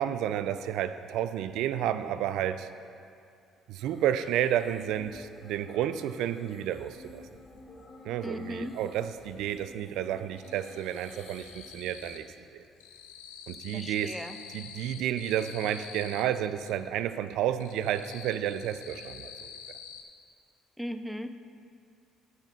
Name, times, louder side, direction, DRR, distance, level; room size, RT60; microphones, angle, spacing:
voice 1, 0.0-2.7 3.7-7.2 8.0-12.3 12.5-12.6 13.5-14.1 14.5-19.3, right 10 dB, 70° right, 12 dB, 0.3 m, -31 dB
sound 1, 3.8-12.2, left 1 dB, 30° left, 1.7 m, -53 dB
sound 2, 6.8-6.9 7.2-8.4 8.7-9.4 9.7-12.3 12.6-16.8 17.2-20.0, left 7 dB, 85° left, 0.6 m, -47 dB
voice 2, 8.2-8.8 13.7-14.4 20.8-21.3, equal, ahead, 9 dB, 0.6 m, -37 dB
8.8 x 5.7 x 5.7 m, 2.4 s
hypercardioid pair, 50°, 0 cm